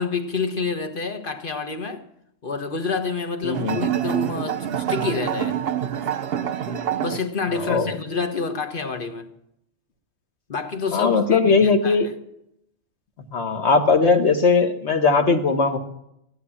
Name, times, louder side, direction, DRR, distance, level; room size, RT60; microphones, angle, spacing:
voice 1, 0.0-2.0 2.4-5.6 7.0-9.3 10.5-12.0, left 4 dB, 45° left, 1.4 m, -28 dB
voice 2, 3.4-3.9 7.6-7.9 10.9-12.1 13.3-15.8, left 4 dB, 60° left, 1.7 m, -19 dB
sound 1, 3.5-7.2, right 9 dB, 55° right, 0.9 m, -26 dB
15.5 x 11.5 x 7.2 m
omnidirectional pair, 1.3 m